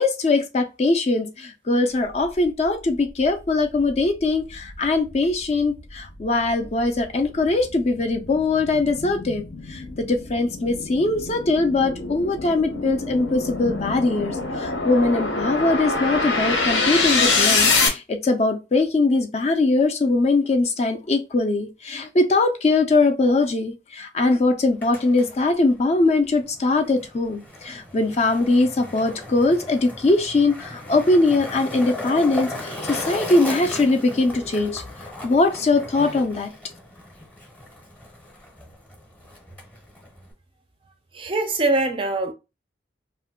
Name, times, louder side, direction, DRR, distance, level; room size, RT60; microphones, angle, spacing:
voice 1, 0.0-9.4 9.7-34.8 35.2-36.5, left 2 dB, 35° left, 0.4 m, -21 dB
sound 1, 3.2-3.3 3.8-17.9, left 3 dB, 75° left, 0.8 m, -25 dB
Skateboard, 24.6-40.3, left 1 dB, 10° left, 0.7 m, -37 dB
voice 2, 41.1-42.3, right 2 dB, 30° right, 0.4 m, -23 dB
2.5 x 2.2 x 3.5 m
head